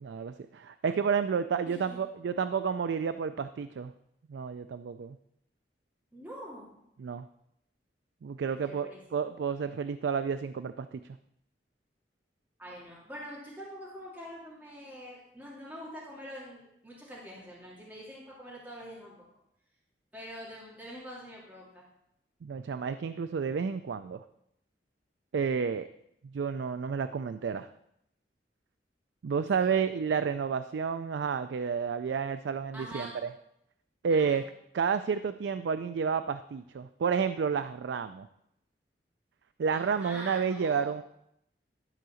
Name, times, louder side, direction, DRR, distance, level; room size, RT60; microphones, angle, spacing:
voice 1, 0.0-3.9 4.3-5.2 7.0-7.3 8.2-11.0 22.4-24.2 25.3-25.9 26.2-27.7 29.2-33.3 34.0-34.4 34.7-38.3 39.6-41.0, right 6 dB, 80° right, 11 dB, 0.4 m, -30 dB
voice 2, 1.6-2.0 6.1-6.7 8.4-9.2 12.6-19.1 20.1-21.8 29.3-29.7 32.7-33.2 34.1-34.4 39.7-40.9, equal, 10° right, -6 dB, 2.5 m, -45 dB
12.0 x 4.7 x 6.3 m, 0.78 s
head